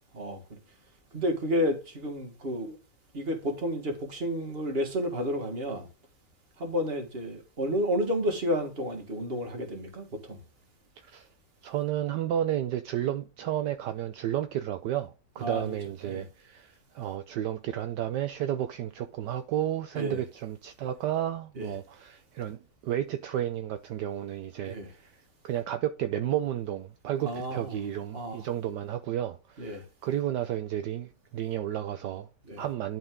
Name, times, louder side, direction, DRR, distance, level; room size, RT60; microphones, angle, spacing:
voice 1, 1.1-2.8 3.1-5.9 6.6-10.4 15.4-15.8 16.1-16.2 20.0-20.2 21.6-21.7 24.7-24.9 27.3-27.8 28.1-28.4 29.6-29.8 32.5-32.6, equal, 35° right, 1.9 m, -31 dB
voice 2, 11.0-11.3 11.6-25.1 25.4-32.3 32.6-33.0, right 11 dB, 75° right, 1.2 m, -32 dB
11.5 x 4.5 x 3.7 m
omnidirectional pair, 1.9 m